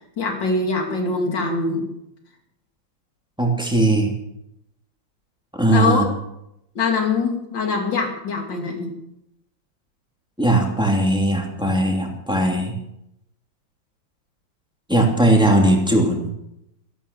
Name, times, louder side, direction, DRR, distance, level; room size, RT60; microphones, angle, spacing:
voice 1, 0.2-1.9 5.7-6.1 6.7-9.0, left 4 dB, 75° left, 3 dB, 3.2 m, -23 dB
voice 2, 3.4-4.1 5.5-6.0 10.4-12.7 14.9-16.3, right 1 dB, ahead, 0 dB, 2.8 m, -18 dB
13.0 x 12.5 x 7.0 m, 0.83 s
omnidirectional pair, 2.0 m